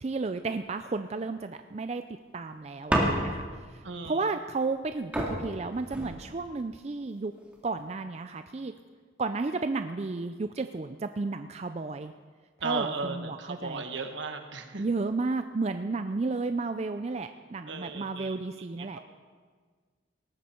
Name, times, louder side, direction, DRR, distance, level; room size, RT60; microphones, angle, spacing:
voice 1, 0.0-2.0 2.3-7.3 7.6-8.7 9.2-12.1 12.6-13.8 14.8-19.0, right 3 dB, 35° right, 9 dB, 0.4 m, -33 dB
sound 1, 2.9-3.6 4.8-4.9 5.1-6.6 7.4-7.8, equal, 5° right, 2.1 m, -30 dB
voice 2, 3.8-4.2 12.6-14.8 17.7-18.4 18.8-19.0, right 4 dB, 70° right, 6 dB, 1.4 m, -35 dB
19.0 x 14.0 x 4.4 m, 1.5 s
head